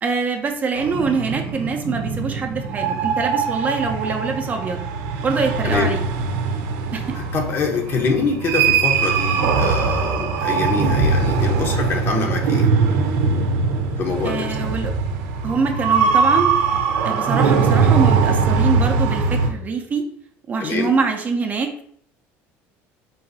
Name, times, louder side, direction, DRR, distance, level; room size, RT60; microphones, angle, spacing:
voice 1, 0.0-4.9 5.2-6.0 6.9-7.2 14.2-14.9 15.4-16.5 17.0-20.0 20.5-21.8, right 4 dB, 30° right, 4 dB, 0.5 m, -24 dB
sound 1, 0.8-19.5, right 5 dB, 90° right, 0.6 m, -21 dB
voice 2, 5.6-6.0 7.1-12.7 14.0-14.6 20.6-20.9, left 4 dB, 40° left, 3 dB, 0.8 m, -24 dB
3.9 x 2.6 x 3.9 m, 0.64 s
cardioid pair, 125°, 6 cm